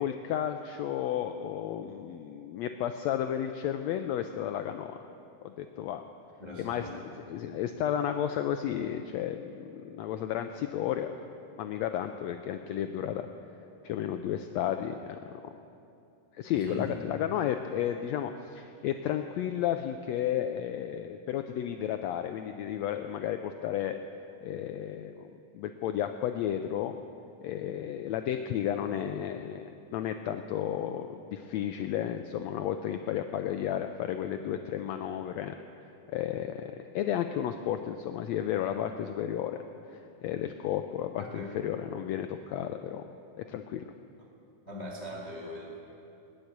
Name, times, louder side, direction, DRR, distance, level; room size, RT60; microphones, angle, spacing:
voice 1, 0.0-5.0 5.4-6.0 6.6-6.9 7.3-11.1 11.6-13.3 13.8-15.2 16.4-24.0 24.4-27.0 27.4-35.5 36.1-39.6 39.9-43.0 43.5-43.9, left 10 dB, 90° left, 7 dB, 1.5 m, -33 dB
voice 2, 6.4-7.0 16.5-17.0 41.2-41.5 44.6-45.8, left 1 dB, 20° left, -3 dB, 1.4 m, -40 dB
20.0 x 7.8 x 8.6 m, 2.7 s
omnidirectional pair, 3.7 m